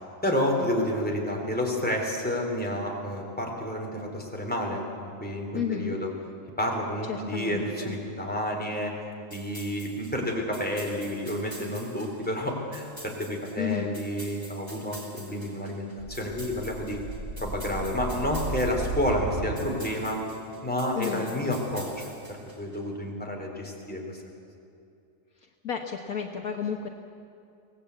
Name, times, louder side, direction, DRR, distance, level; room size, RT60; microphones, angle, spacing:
voice 1, 0.0-6.1 6.6-9.0 9.3-17.0 17.4-20.2 20.6-24.2, left 1 dB, 5° left, 0 dB, 3.6 m, -30 dB
voice 2, 5.5-6.0 7.1-7.9 13.6-13.9 21.0-21.3 25.4-26.9, left 8 dB, 60° left, 3 dB, 1.5 m, -32 dB
sound 1, 9.3-22.8, right 1 dB, 15° right, 3.0 m, -47 dB
sound 2, 16.0-20.3, right 3 dB, 30° right, 1.1 m, -36 dB
24.0 x 18.0 x 8.3 m, 2.6 s
omnidirectional pair, 1.8 m